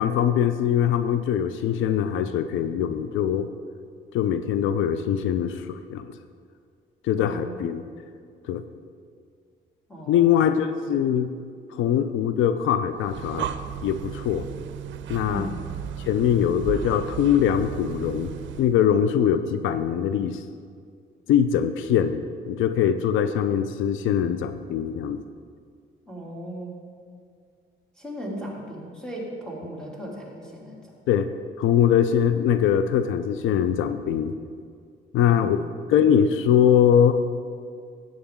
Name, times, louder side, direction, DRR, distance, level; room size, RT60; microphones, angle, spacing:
voice 1, 0.0-3.5 4.1-6.1 7.0-7.9 8.5-8.6 10.1-11.3 11.7-13.5 13.8-14.5 15.1-15.5 16.1-18.3 18.6-20.4 21.3-25.2 31.1-31.3 31.6-34.3 35.1-35.6 35.9-37.2, left 9 dB, 80° left, 10 dB, 0.5 m, -22 dB
voice 2, 7.2-7.6 9.9-10.4 15.3-15.7 26.1-26.8 28.0-30.8 35.2-35.6, right 1 dB, 5° left, -4 dB, 2.9 m, -37 dB
Breathing, 13.0-18.8, right 9 dB, 70° right, 0.5 m, -35 dB
13.5 x 8.5 x 3.7 m, 2.1 s
cardioid pair, 90°, 20 cm